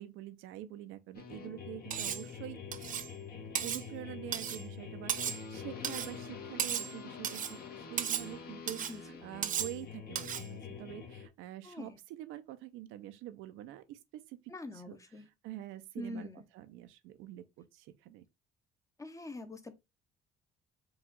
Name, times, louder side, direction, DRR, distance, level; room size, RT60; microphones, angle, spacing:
voice 1, 0.0-2.6 3.6-15.0 15.4-18.3, right 13 dB, 85° right, 0.6 m, -46 dB
sound 1, 1.1-11.3, left 6 dB, 50° left, 1.1 m, -46 dB
Cutlery silverware, 1.9-2.3 2.7-3.1 3.5-3.8 4.3-4.6 5.1-5.4 5.8-6.1 6.6-6.9 7.2-7.6 8.0-8.3 8.7-9.0 9.4-9.8 10.2-10.5, right 9 dB, 40° right, 0.5 m, -35 dB
voice 2, 11.6-12.0 14.5-15.3 16.0-16.4 19.0-19.8, left 2 dB, 15° left, 0.7 m, -44 dB
4.8 x 2.4 x 3.7 m
cardioid pair, 105°, 20 cm